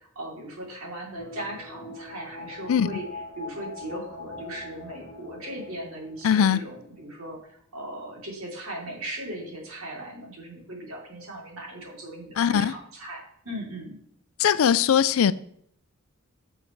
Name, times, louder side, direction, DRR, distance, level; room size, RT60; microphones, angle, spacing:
voice 1, 0.0-3.0 3.4-7.4 7.7-14.0, right 1 dB, 75° right, 3.1 m, -38 dB
sound 1, 1.2-7.1 7.4-7.5, left 2 dB, 25° left, 2.0 m, -42 dB
voice 2, 6.2-6.6 12.4-12.7 14.4-15.3, left 8 dB, 70° left, 0.4 m, -20 dB
10.5 x 6.5 x 3.1 m
head